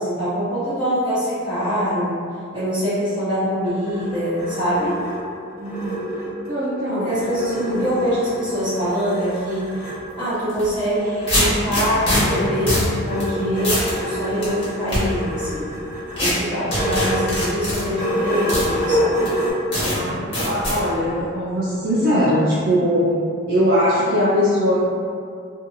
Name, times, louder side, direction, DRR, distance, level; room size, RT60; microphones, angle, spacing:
voice 1, 0.0-2.2 2.5-5.0 6.9-9.8 10.2-15.7 16.2-19.3, equal, 25° right, -13 dB, 1.2 m, -24 dB
sound 1, 3.4-6.7 7.1-10.0 10.9-19.5, equal, 5° right, 1.0 m, -28 dB
voice 2, 5.6-6.0 6.4-7.9 19.9-23.1 23.5-24.8, equal, 50° right, -10 dB, 0.5 m, -21 dB
sound 2, 10.5-10.6 11.3-12.2 12.7-12.9 13.2-13.3 13.6-13.9 14.4-15.0 16.2-16.3 16.7-17.8 18.5-18.7 19.2-19.3 19.7-19.9 20.3-20.8, left 1 dB, 25° left, 1.1 m, -21 dB
2.6 x 2.4 x 2.7 m, 2.3 s
head